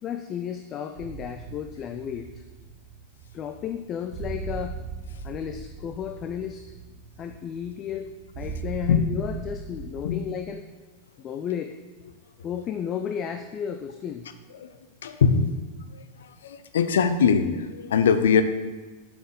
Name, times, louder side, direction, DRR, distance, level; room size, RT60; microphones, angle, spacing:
voice 1, 0.0-2.4 3.3-4.8 5.2-6.6 7.2-8.1 8.4-10.7 11.2-11.8 12.4-14.3, left 8 dB, 30° left, 7 dB, 0.5 m, -33 dB
sound 1, 1.0-10.4, right 4 dB, 50° right, 1.0 m, -39 dB
voice 2, 15.0-15.6 15.9-18.4, left 6 dB, 65° left, 10 dB, 0.7 m, -22 dB
8.0 x 6.1 x 6.6 m, 1.3 s
figure-of-eight pair, 90°, 0 cm